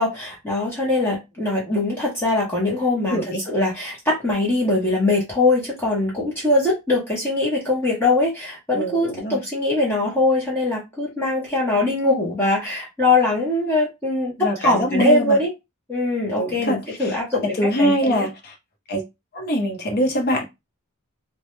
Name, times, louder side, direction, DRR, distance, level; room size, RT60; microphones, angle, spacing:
voice 1, 0.0-15.5 15.9-18.3, left 2 dB, 10° left, 0.7 m, -22 dB
voice 2, 8.8-9.4 14.4-15.4 16.4-16.8 17.4-18.3 18.9-19.0 19.3-20.5, equal, 45° left, 0.7 m, -23 dB
2.2 x 2.1 x 3.0 m
head